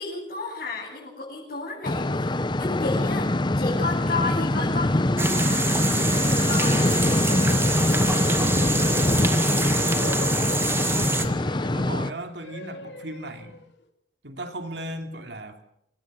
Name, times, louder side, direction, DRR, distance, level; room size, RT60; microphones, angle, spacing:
voice 1, 0.0-9.6, left 3 dB, 55° left, -5 dB, 7.8 m, -34 dB
sound 1, 1.8-12.1, left 1 dB, 25° left, 0.8 m, -23 dB
sound 2, 5.2-11.3, right 3 dB, 15° right, 2.1 m, -27 dB
sound 3, 7.3-13.8, left 3 dB, 90° left, 2.7 m, -42 dB
voice 2, 10.9-13.6 14.2-15.6, right 1 dB, 80° right, 6 dB, 3.0 m, -36 dB
26.5 x 18.0 x 6.6 m, 0.77 s
head